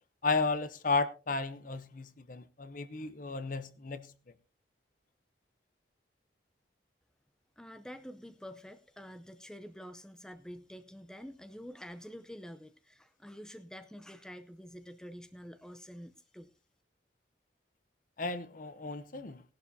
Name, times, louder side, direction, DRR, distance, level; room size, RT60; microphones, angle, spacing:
voice 1, 0.2-4.1 18.2-19.4, left 3 dB, 45° left, 0.8 m, -33 dB
voice 2, 7.6-16.5, equal, 5° left, 0.6 m, -48 dB
18.5 x 11.5 x 2.7 m
head